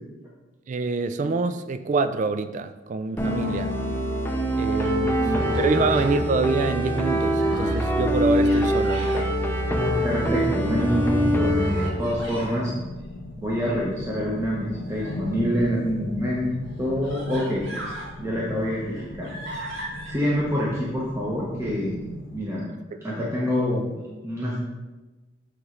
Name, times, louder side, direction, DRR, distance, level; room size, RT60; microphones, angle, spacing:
voice 1, 0.7-3.7 4.6-5.3 5.6-9.3 22.9-23.0, right 4 dB, 40° right, 11 dB, 0.3 m, -26 dB
sound 1, 3.2-11.9, equal, 10° left, 0.5 m, -24 dB
Human voice, 4.3-5.0 5.4-6.2 6.7-7.8 8.3-9.3 9.9-10.7 11.6-12.6 14.9-15.8 16.5-16.6 17.0-18.1 18.6-20.1, right 1 dB, 85° right, 1.8 m, -40 dB
voice 2, 5.0-5.4 5.7-5.8 10.0-12.7 13.4-16.5 16.8-17.7 18.2-19.3 20.1-22.7 23.0-23.9 24.2-24.6, equal, 15° right, -6 dB, 0.8 m, -26 dB
sound 2, 9.7-22.4, left 1 dB, 70° left, 0.7 m, -38 dB
8.7 x 3.1 x 3.7 m, 1.1 s
head